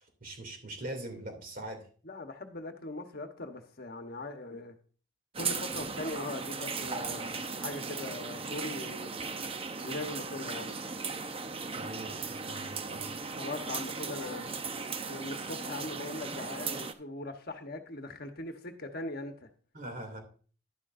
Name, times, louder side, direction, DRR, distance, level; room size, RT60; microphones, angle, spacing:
voice 1, 0.0-1.9 11.7-13.2 19.7-20.2, right 1 dB, 45° right, 2.7 m, -42 dB
voice 2, 2.0-4.8 5.4-9.1 9.8-10.8 13.3-14.5 15.1-19.5, left 2 dB, 50° left, 1.1 m, -40 dB
sound 1, 5.3-16.9, right 4 dB, 30° right, 0.7 m, -37 dB
11.5 x 11.0 x 2.6 m
head